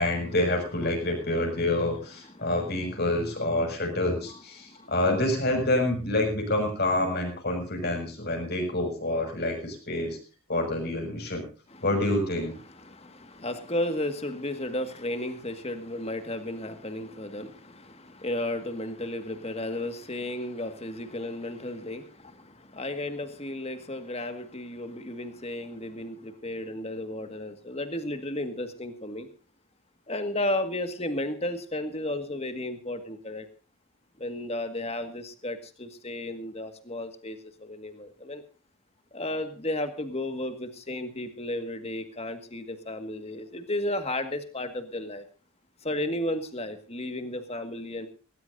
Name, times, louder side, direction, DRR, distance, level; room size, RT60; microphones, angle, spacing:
voice 1, 0.0-10.2 10.5-11.5 11.8-12.5, left 1 dB, 45° left, 3 dB, 6.4 m, -27 dB
voice 2, 12.6-29.3 30.1-33.5 34.2-38.4 39.1-45.3 45.8-48.1, left 1 dB, 30° left, 8 dB, 1.9 m, -33 dB
19.0 x 19.0 x 2.7 m, 0.36 s
head